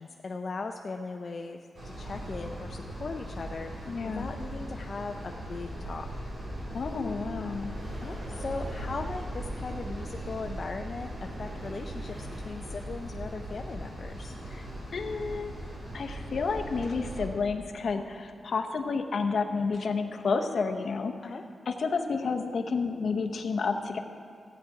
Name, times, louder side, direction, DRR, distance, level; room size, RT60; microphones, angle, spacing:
voice 1, 0.0-6.1 8.0-14.3 21.2-21.4, left 3 dB, 45° left, 3 dB, 0.5 m, -39 dB
sound 1, 1.7-17.3, equal, 45° right, 3.4 m, -39 dB
voice 2, 3.9-4.3 6.7-7.7 14.5-15.5 15.9-21.1 21.7-24.0, left 4 dB, 60° left, 5 dB, 0.9 m, -30 dB
sound 2, 5.7-10.7, right 1 dB, 20° right, 0.7 m, -45 dB
sound 3, 6.0-12.9, right 2 dB, 65° right, 2.7 m, -46 dB
15.0 x 8.9 x 4.8 m, 2.4 s
wide cardioid pair, 120°, 0 cm